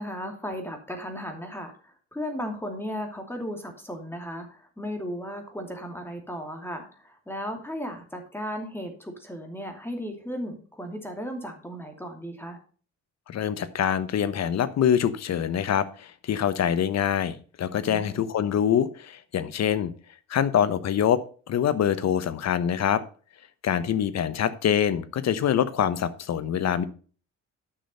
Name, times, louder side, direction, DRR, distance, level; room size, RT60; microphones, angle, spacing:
voice 1, 0.0-12.6 17.8-18.2, equal, 5° left, 4 dB, 2.7 m, -35 dB
voice 2, 13.3-19.9 20.3-21.2 21.5-23.0 23.6-26.8, left 9 dB, 60° left, 15 dB, 1.1 m, -25 dB
10.0 x 6.3 x 5.5 m, 0.40 s
cardioid pair, 90°, 30 cm